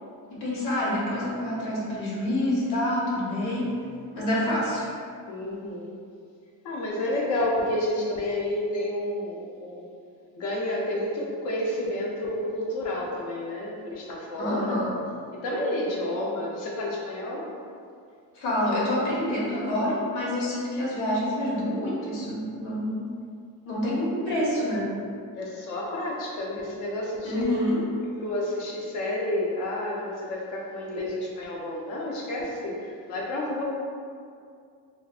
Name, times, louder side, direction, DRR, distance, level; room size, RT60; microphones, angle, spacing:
voice 1, 0.3-3.7 4.1-4.9 14.4-14.9 18.3-23.1 23.6-24.9 27.2-27.8, left 1 dB, 80° left, -6 dB, 1.2 m, -27 dB
voice 2, 5.3-5.9 6.6-9.9 10.3-14.7 15.3-17.5 25.3-27.5 28.2-33.6, left 1 dB, 55° left, -3 dB, 0.7 m, -30 dB
3.3 x 2.5 x 2.4 m, 2.3 s
cardioid pair, 160°, 37 cm